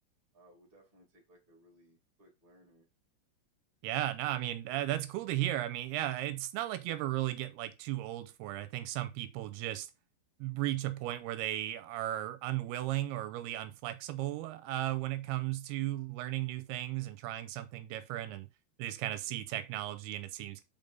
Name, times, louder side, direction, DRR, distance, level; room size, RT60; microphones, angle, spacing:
voice 1, 0.3-2.9 19.3-19.4, equal, 15° right, 2.3 m, -63 dB
voice 2, 3.8-9.9 10.4-18.5 18.8-20.6, right 14 dB, 90° right, 2.7 m, -35 dB
5.5 x 5.4 x 5.3 m
omnidirectional pair, 4.6 m